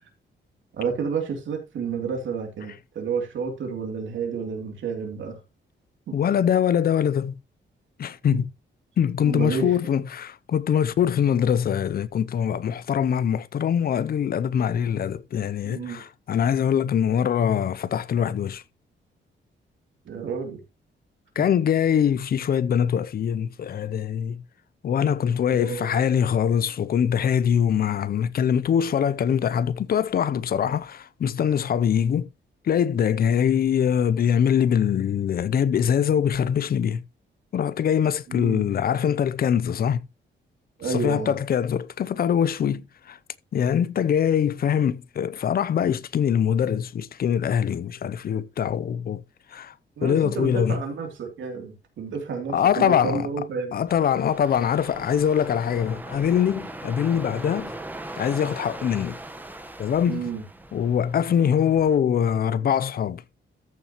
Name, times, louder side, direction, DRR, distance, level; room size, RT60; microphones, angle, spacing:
voice 1, 0.7-5.4 6.1-6.2 8.3-8.4 9.2-9.8 15.6-16.0 20.0-20.6 25.5-26.0 38.3-38.7 40.8-41.4 50.0-53.7 60.1-60.4, right 5 dB, 80° right, 3.0 m, -30 dB
voice 2, 6.1-7.4 8.0-8.5 9.0-18.6 21.4-24.4 24.8-32.3 32.6-37.0 37.5-40.0 40.9-43.2 43.5-49.2 49.5-49.7 50.0-50.8 52.5-53.3 53.7-57.7 58.2-59.2 59.8-60.3 60.7-63.2, left 8 dB, 50° left, 0.5 m, -23 dB
sound 1, 53.9-62.0, right 1 dB, 10° right, 1.1 m, -39 dB
14.0 x 7.1 x 3.0 m
wide cardioid pair, 165°, 20 cm